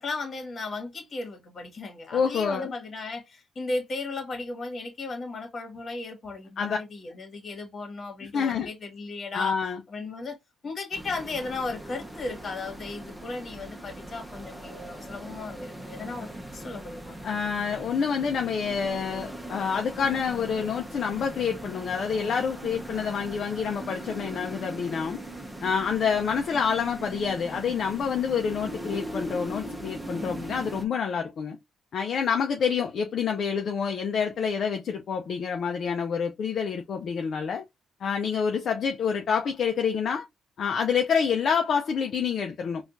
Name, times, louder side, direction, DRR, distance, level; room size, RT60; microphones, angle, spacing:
voice 1, 0.0-9.6 9.9-10.4 10.6-17.2, left 3 dB, 45° left, 1.5 m, -36 dB
voice 2, 2.1-2.7 6.6-6.8 8.2-8.7 9.3-9.8 17.2-25.2 25.6-31.6 31.9-37.6 38.0-40.3 40.6-42.8, left 6 dB, 60° left, 0.5 m, -27 dB
sound 1, 10.9-30.8, right 1 dB, 10° right, 0.8 m, -40 dB
4.2 x 2.4 x 2.6 m
cardioid pair, 90°, 0 cm